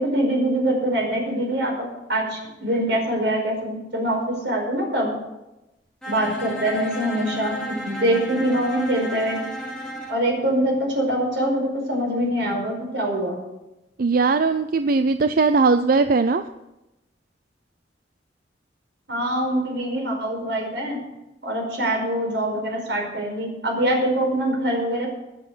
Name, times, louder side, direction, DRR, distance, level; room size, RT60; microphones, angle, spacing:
voice 1, 0.0-5.1 6.1-9.4 10.1-13.4 19.1-21.0 21.4-25.1, right 1 dB, 80° right, 0 dB, 5.0 m, -24 dB
Bowed string instrument, 6.0-10.2, equal, 5° left, 3.8 m, -33 dB
voice 2, 14.0-16.4, right 4 dB, 55° right, 10 dB, 0.5 m, -19 dB
20.5 x 7.0 x 6.2 m, 0.97 s
head